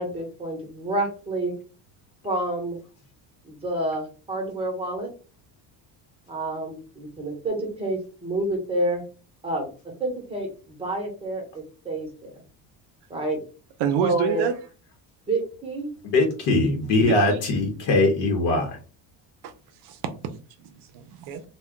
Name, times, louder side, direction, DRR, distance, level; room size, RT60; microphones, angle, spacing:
voice 1, 0.0-1.5 2.2-2.8 3.4-5.1 6.3-9.0 9.4-9.7 10.0-12.3 13.1-13.4 14.0-14.5 15.3-15.9, right 1 dB, 15° right, 2 dB, 0.9 m, -28 dB
voice 2, 13.8-14.6 17.0-17.4 19.4-19.5 19.8-21.4, right 7 dB, 65° right, 9 dB, 0.5 m, -28 dB
voice 3, 16.0-18.8, left 2 dB, 75° left, 2 dB, 0.9 m, -21 dB
2.2 x 2.2 x 3.6 m, 0.35 s
cardioid pair, 150°, 44 cm